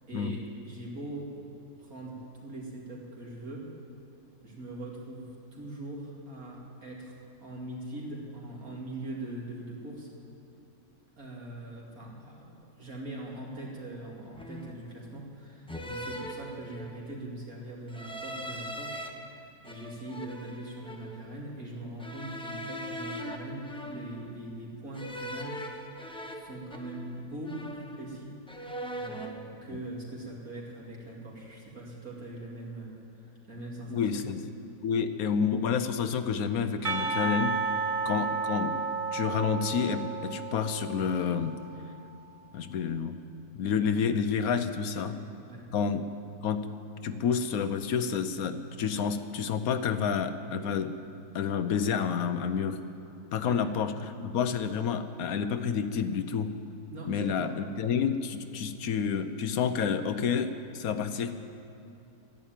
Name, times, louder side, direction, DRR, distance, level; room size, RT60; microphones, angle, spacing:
voice 1, 0.1-1.3 1.8-3.7 4.4-10.1 11.2-28.4 28.9-34.3 45.5-45.6 53.4-53.6 56.9-57.5, right 1 dB, 65° right, -3 dB, 3.1 m, -42 dB
sound 1, 13.3-13.5 14.3-14.9 15.7-17.1 17.9-19.1 19.6-21.2 22.0-24.4 24.9-27.2 27.5-28.2 28.5-29.4, equal, 5° left, 0.7 m, -40 dB
voice 2, 33.9-34.4 34.8-37.6 38.0-38.8 39.1-41.6 42.5-43.1 43.5-45.1 45.7-46.1 46.4-46.7 47.0-50.9 51.3-52.8 53.3-56.6 57.1-61.3, left 6 dB, 70° left, 10 dB, 1.1 m, -29 dB
Percussion, 36.8-41.7, right 4 dB, 30° right, 0.6 m, -32 dB
13.0 x 11.0 x 9.1 m, 2.8 s
omnidirectional pair, 1.6 m